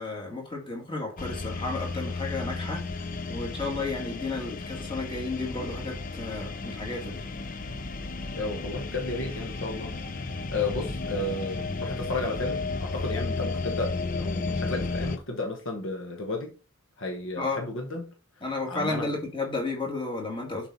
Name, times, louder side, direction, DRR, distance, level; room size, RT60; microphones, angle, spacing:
voice 1, 0.0-7.2 17.4-17.6 18.4-20.7, left 3 dB, 20° left, 2.1 m, -33 dB
sound 1, 1.2-15.2, left 3 dB, 40° left, 0.6 m, -33 dB
voice 2, 8.3-16.5 17.0-19.1, left 2 dB, 60° left, 1.2 m, -33 dB
7.2 x 4.7 x 4.2 m
head